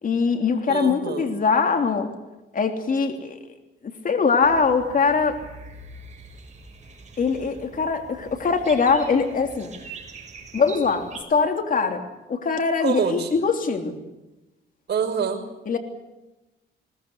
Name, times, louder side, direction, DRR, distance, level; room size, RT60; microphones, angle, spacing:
voice 1, 0.0-2.1 2.5-3.4 4.0-5.4 7.2-9.7 10.5-12.0 12.3-14.0 15.7-15.8, left 5 dB, 45° left, 5 dB, 3.3 m, -22 dB
voice 2, 0.7-1.3 12.8-13.3 14.9-15.4, right 6 dB, 55° right, 5 dB, 5.6 m, -26 dB
sound 1, 4.4-11.2, right 4 dB, 35° right, 6.1 m, -43 dB
22.0 x 20.0 x 8.3 m, 1.0 s
cardioid pair, 90°, 20 cm